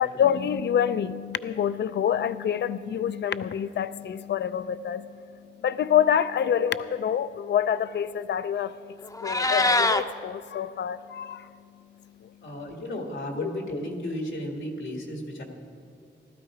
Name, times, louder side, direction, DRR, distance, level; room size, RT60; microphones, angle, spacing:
voice 1, 0.0-5.2 5.6-8.8 9.2-11.5 13.4-13.5, left 9 dB, 65° left, 14 dB, 0.4 m, -26 dB
Meow, 9.0-10.0, left 2 dB, 20° left, 0.6 m, -23 dB
voice 2, 12.4-15.4, equal, 90° left, 2 dB, 2.0 m, -34 dB
15.5 x 12.5 x 4.9 m, 2.6 s
cardioid pair, 60°, 19 cm